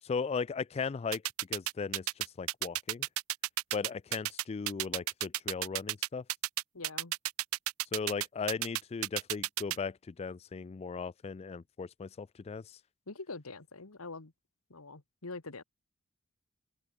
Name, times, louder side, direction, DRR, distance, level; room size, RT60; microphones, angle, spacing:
voice 1, 0.0-1.2 1.5-3.1 3.7-6.2 7.9-12.8, left 5 dB, 30° left, 0.3 m, -37 dB
sound 1, 1.1-9.8, right 15 dB, 85° right, 0.7 m, -32 dB
voice 2, 6.7-7.1 13.1-14.3 14.7-15.6, left 3 dB, 90° left, 1.7 m, -44 dB
open air
head